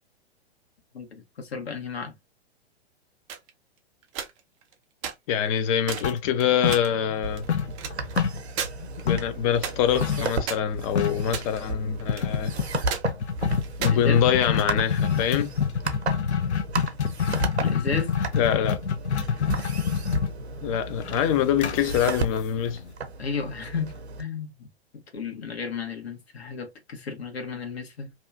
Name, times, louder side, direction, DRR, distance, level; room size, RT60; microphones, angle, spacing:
voice 1, 0.9-2.2 13.9-14.2 17.6-18.2 23.2-24.7 25.1-28.1, left 5 dB, 70° left, 1.2 m, -33 dB
sound 1, 3.3-3.5 4.0-4.7 5.0-5.1 5.5-5.6 5.9-6.1 6.4-6.9 7.4-8.2 8.5-8.7 9.0-9.1 9.6-10.0 10.4-11.7 12.0-12.6 12.9-13.0 13.6-14.7, right 8 dB, 30° right, 0.5 m, -34 dB
voice 2, 5.3-7.5 9.0-12.5 13.8-15.5 18.3-18.8 20.6-22.8, left 9 dB, 30° left, 0.5 m, -24 dB
sound 2, 6.0-7.2 7.5-9.4 10.0-10.3 10.6-10.7 10.9-11.3 12.1-22.9, left 6 dB, 85° left, 0.5 m, -27 dB
sound 3, 7.2-24.2, right 3 dB, 75° right, 0.7 m, -34 dB
2.7 x 2.3 x 2.5 m
figure-of-eight pair, 105°, 33 cm